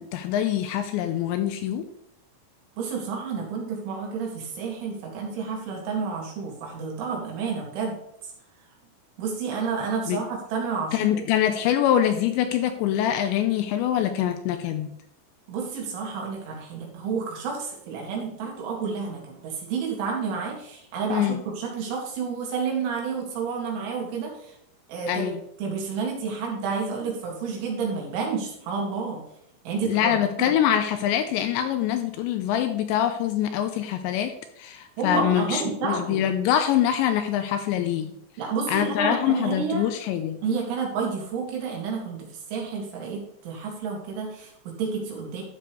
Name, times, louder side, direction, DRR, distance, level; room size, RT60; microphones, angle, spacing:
voice 1, 0.0-1.9 10.1-10.2 10.9-14.9 21.1-21.4 25.1-25.4 29.9-38.1 38.7-40.4, left 10 dB, 85° left, 8 dB, 2.7 m, -24 dB
voice 2, 2.8-8.0 8.2-8.3 9.2-11.3 15.5-24.6 24.9-25.3 25.6-29.2 29.7-30.6 35.0-36.2 38.4-39.9 40.4-45.4, right 5 dB, 75° right, -1 dB, 4.5 m, -30 dB
12.5 x 6.8 x 3.2 m, 0.74 s
omnidirectional pair, 5.5 m